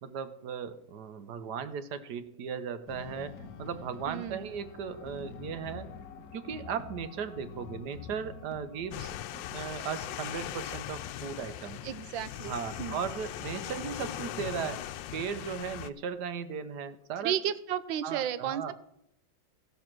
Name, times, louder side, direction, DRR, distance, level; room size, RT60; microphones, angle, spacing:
voice 1, 0.0-5.9 6.3-11.9 12.5-14.8 15.1-17.3 18.0-18.7, right 7 dB, 65° right, 12 dB, 1.3 m, -37 dB
sound 1, 2.9-9.0, left 6 dB, 60° left, 1.1 m, -46 dB
voice 2, 4.1-4.5 11.8-12.5 12.8-13.0 17.2-18.7, right 10 dB, 85° right, 15 dB, 1.4 m, -33 dB
sound 2, 8.9-15.9, left 12 dB, 80° left, 1.3 m, -39 dB
14.0 x 7.0 x 6.0 m, 0.76 s
omnidirectional pair, 2.0 m